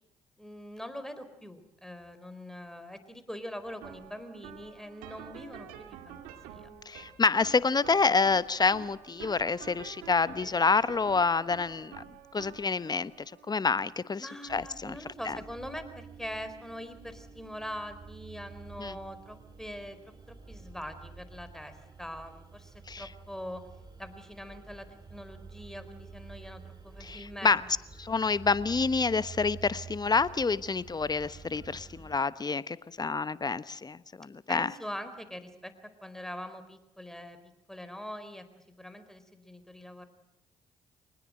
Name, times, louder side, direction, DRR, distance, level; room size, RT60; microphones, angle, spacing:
voice 1, 0.4-6.2 6.5-6.7 14.2-23.7 24.0-27.7 34.5-35.7 36.0-37.4 37.7-40.1, equal, 5° left, 10 dB, 4.2 m, -43 dB
sound 1, 3.6-20.8, right 9 dB, 80° right, 2.2 m, -50 dB
voice 2, 6.9-12.0 12.3-13.1 13.5-15.0 15.2-15.4 18.8-18.9 22.9-23.1 27.0-27.6 28.0-34.7, left 4 dB, 30° left, 16 dB, 1.1 m, -28 dB
sound 2, 14.5-32.2, right 5 dB, 30° right, 2.8 m, -49 dB
24.0 x 20.0 x 7.7 m, 0.85 s
hypercardioid pair, 50°, 14 cm